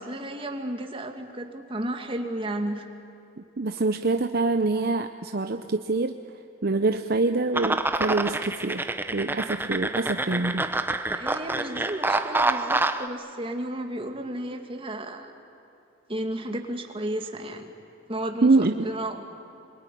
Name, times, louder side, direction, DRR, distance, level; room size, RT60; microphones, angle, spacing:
voice 1, 0.0-2.9 11.1-15.3 16.1-17.7 18.1-19.2, right 1 dB, 25° right, 4 dB, 2.1 m, -33 dB
voice 2, 3.4-6.2 6.6-10.6 18.4-18.9, right 3 dB, 50° right, 7 dB, 0.8 m, -25 dB
sound 1, 7.5-13.1, right 2 dB, 10° right, 0.8 m, -27 dB
26.0 x 22.0 x 10.0 m, 2.8 s
head